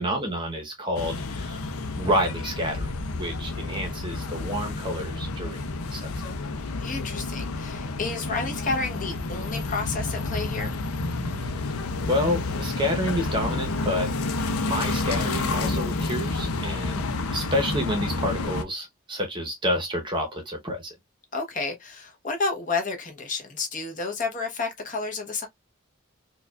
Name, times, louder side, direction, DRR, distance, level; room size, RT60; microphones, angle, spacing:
voice 1, 0.0-1.7 2.0-6.3 11.4-14.1 14.6-20.9, equal, 20° right, 0.8 m, -29 dB
sound 1, 0.9-18.6, left 3 dB, 80° left, 0.6 m, -30 dB
voice 2, 6.8-10.8 16.7-17.0 21.3-25.5, left 3 dB, 35° left, 1.0 m, -31 dB
4.6 x 2.4 x 2.3 m
head